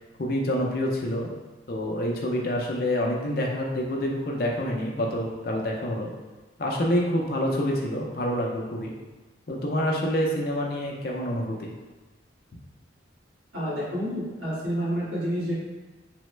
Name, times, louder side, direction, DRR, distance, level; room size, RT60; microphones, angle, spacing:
voice 1, 0.2-1.3 1.7-6.1 6.6-8.9 9.5-11.7, equal, 50° left, -1 dB, 0.5 m, -27 dB
voice 2, 13.5-15.5, equal, 85° right, -9 dB, 1.4 m, -29 dB
3.4 x 2.1 x 3.1 m, 1.2 s
head